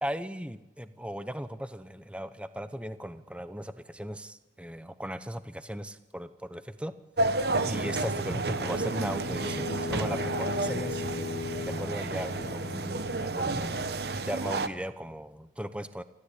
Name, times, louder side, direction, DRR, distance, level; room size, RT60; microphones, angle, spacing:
voice 1, 0.0-6.9 7.7-11.0 11.6-13.7 14.1-16.0, equal, 5° right, 11 dB, 0.9 m, -37 dB
sound 1, 7.2-14.7, right 2 dB, 60° right, 1.1 m, -31 dB
sound 2, 7.5-14.1, left 3 dB, 65° left, 1.1 m, -38 dB
29.0 x 13.0 x 8.4 m, 0.98 s
head